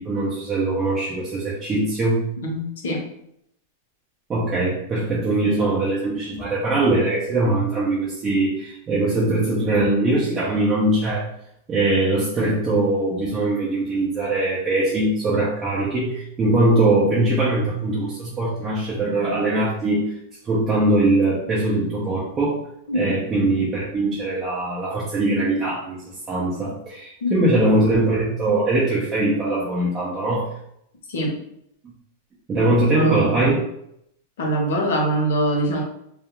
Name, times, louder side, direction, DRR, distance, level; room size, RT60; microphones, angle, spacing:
voice 1, 0.0-2.2 4.3-11.3 11.7-20.1 20.4-22.6 22.9-26.0 26.3-30.5 32.5-33.6, right 2 dB, 15° right, -7 dB, 0.4 m, -21 dB
voice 2, 2.4-3.0 22.9-23.1 27.2-27.6 31.1-31.3 32.6-33.6 34.4-35.8, right 1 dB, 75° left, 0 dB, 0.8 m, -24 dB
2.3 x 2.3 x 2.9 m, 0.75 s
supercardioid pair, 175°, 0 cm